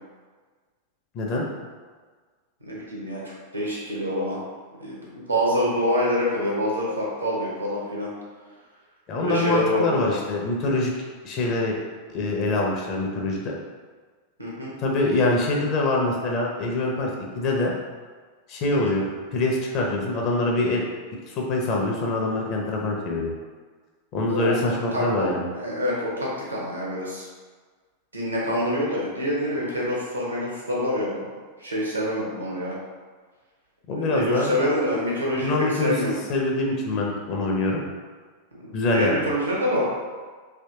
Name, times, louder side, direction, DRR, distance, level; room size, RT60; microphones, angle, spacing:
voice 1, 1.1-1.5 9.1-10.9 11.2-11.8 12.1-13.5 14.8-17.1 17.4-17.7 18.5-20.8 21.3-23.3 24.1-25.4 33.9-34.5 35.4-37.8 38.7-39.2, left 2 dB, 40° left, -1 dB, 0.7 m, -24 dB
voice 2, 2.6-3.2 3.5-4.4 4.8-8.1 9.2-10.2 14.4-14.7 18.8-19.0 24.3-25.3 25.5-27.3 28.1-31.3 31.6-32.7 33.9-36.1 38.5-39.8, equal, 85° right, -5 dB, 1.0 m, -26 dB
3.4 x 2.9 x 2.8 m, 1.5 s
figure-of-eight pair, 90°, 0 cm